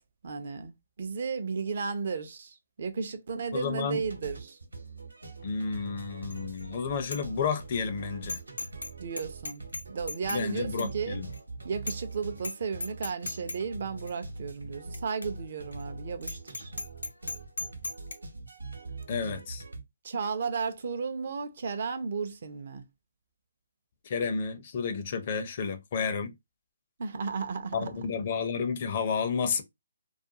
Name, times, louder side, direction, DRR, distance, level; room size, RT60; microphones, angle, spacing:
voice 1, 0.2-4.6 9.0-9.6 9.9-11.2 11.6-16.7 20.0-22.9 27.0-28.0, right 5 dB, 55° right, 0.5 m, -34 dB
voice 2, 3.5-4.0 5.4-8.4 10.3-11.3 19.1-19.6 24.0-26.3 27.7-29.6, left 5 dB, 45° left, 0.5 m, -31 dB
sound 1, 4.0-19.8, right 2 dB, 85° right, 0.9 m, -42 dB
Bicycle bell, 6.3-6.6 7.0-7.2 7.6-7.7 8.3-8.9 9.2-10.4 10.8-10.9 11.3-11.4 11.9-12.1 12.4-12.5 12.8-13.6 14.1-14.2 14.9-15.0 15.2-15.3 15.7-15.8 16.2-18.2, left 2 dB, 85° left, 0.6 m, -36 dB
2.4 x 2.2 x 2.7 m
figure-of-eight pair, 145°, 0 cm